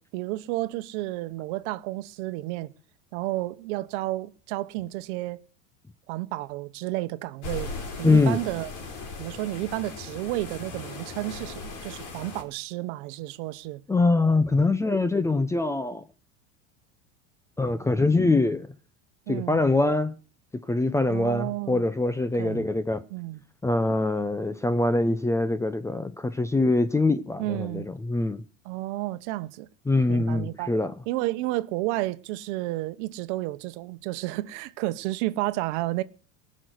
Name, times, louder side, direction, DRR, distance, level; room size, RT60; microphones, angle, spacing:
voice 1, 0.0-2.7 3.1-5.4 6.1-7.7 8.0-8.7 9.2-13.8 19.3-19.6 21.1-21.8 22.4-22.7 23.1-23.4 27.4-27.9 28.6-29.7 30.1-30.7 31.1-36.0, right 17 dB, 65° right, 1.1 m, -31 dB
sound 1, 7.4-12.4, left 4 dB, 50° left, 4.6 m, -38 dB
voice 2, 8.0-8.4 13.9-16.0 17.6-18.7 19.3-20.1 20.7-23.0 23.6-28.4 29.9-30.9, left 2 dB, 5° left, 0.6 m, -23 dB
18.5 x 6.5 x 7.9 m
supercardioid pair, 130°, 39 cm